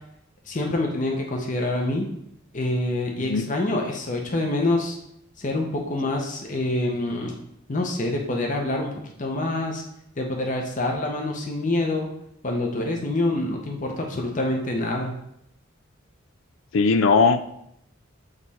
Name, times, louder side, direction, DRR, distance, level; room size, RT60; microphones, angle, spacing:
voice 1, 0.5-2.1 2.5-5.0 5.4-7.3 7.7-8.9 9.2-9.8 10.2-12.1 12.4-15.2, left 2 dB, 40° left, 2 dB, 0.8 m, -26 dB
voice 2, 16.7-17.5, left 4 dB, 75° left, 11 dB, 0.4 m, -19 dB
7.6 x 3.1 x 4.2 m, 0.75 s
head